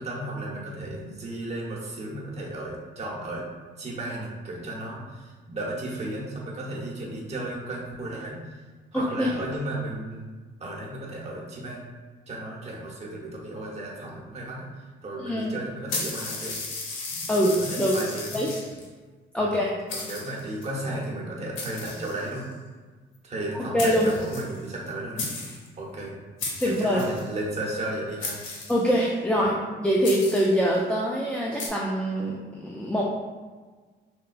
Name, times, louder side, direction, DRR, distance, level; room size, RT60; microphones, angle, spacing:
voice 1, 0.0-3.4 3.8-8.4 8.9-10.3 10.6-11.8 12.3-14.7 15.0-16.6 17.1-18.5 19.4-22.4 23.2-25.3 25.8-26.2 26.6-28.4 29.4-29.5, right 1 dB, 35° right, -4 dB, 1.0 m, -34 dB
voice 2, 8.9-9.3 15.2-15.5 17.3-17.9 18.3-18.5 19.3-19.7 23.5-24.1 26.6-27.0 28.7-33.0, equal, 5° left, -4 dB, 0.4 m, -24 dB
sound 1, 15.9-18.9 19.5-19.6 19.9-20.6 21.6-22.5 23.5-23.6 23.8-24.9 25.2-25.7 26.4-27.3 28.2-29.1 30.0-30.6 31.6-31.7, left 3 dB, 90° left, 0.7 m, -35 dB
3.9 x 2.2 x 2.4 m, 1.4 s
cardioid pair, 90°, 20 cm